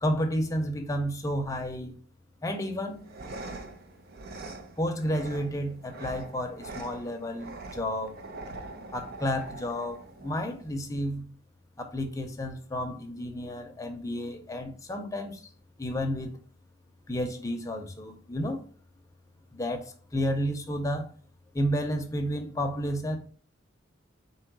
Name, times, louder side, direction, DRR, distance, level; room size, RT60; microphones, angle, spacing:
voice 1, 0.0-2.0 2.4-3.0 4.8-8.2 8.9-11.3 11.8-15.4 15.8-16.4 17.1-18.6 19.5-21.1 21.5-23.2, equal, 20° left, 0.6 m, -31 dB
sound 1, 2.9-10.9, right 2 dB, 55° right, 0.6 m, -43 dB
3.7 x 2.9 x 4.6 m
head